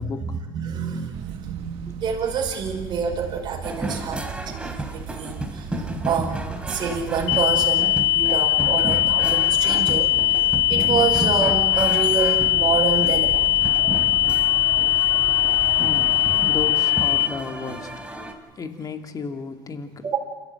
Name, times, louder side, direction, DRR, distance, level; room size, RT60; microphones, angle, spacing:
voice 1, 0.0-0.4 1.9-2.0 14.9-18.0 18.6-20.0, left 5 dB, 35° left, 6 dB, 2.4 m, -34 dB
voice 2, 0.5-5.7 6.1-10.1 10.7-13.4 20.0-20.2, right 6 dB, 45° right, 0 dB, 5.2 m, -27 dB
sound 1, 1.1-16.7, right 9 dB, 65° right, 1.5 m, -37 dB
sound 2, 3.6-18.3, right 1 dB, 10° right, 3.1 m, -33 dB
sound 3, 7.3-17.3, left 14 dB, 70° left, 1.8 m, -20 dB
28.0 x 14.0 x 9.0 m, 1.3 s
supercardioid pair, 85°, 11 cm